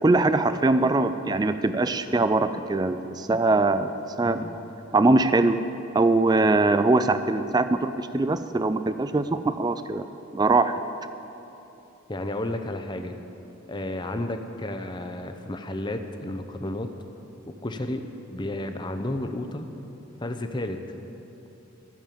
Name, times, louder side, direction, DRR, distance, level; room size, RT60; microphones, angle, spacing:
voice 1, 0.0-3.9 4.2-4.4 4.9-5.6 5.9-10.0 10.3-10.7, right 2 dB, 20° right, 11 dB, 0.3 m, -22 dB
voice 2, 4.2-4.6 12.1-13.1 13.7-16.9 17.6-18.0 18.3-19.6 20.2-20.8, left 1 dB, 20° left, 7 dB, 0.6 m, -32 dB
13.5 x 7.3 x 8.5 m, 3.0 s
head